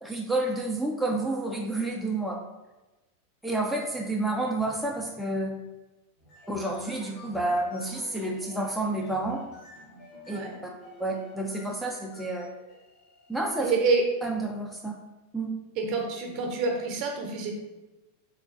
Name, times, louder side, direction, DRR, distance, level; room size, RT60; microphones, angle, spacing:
voice 1, 0.0-2.4 3.4-5.6 6.5-9.4 10.3-10.7 11.0-12.6 13.3-13.8 14.2-15.0 15.3-15.6, right 2 dB, ahead, -1 dB, 0.4 m, -30 dB
sound 1, 6.2-14.4, left 1 dB, 55° left, 1.5 m, -50 dB
voice 2, 13.6-14.0 15.8-17.5, right 4 dB, 50° right, 2 dB, 0.7 m, -27 dB
3.4 x 3.0 x 2.5 m, 1.1 s
hypercardioid pair, 95°, 0 cm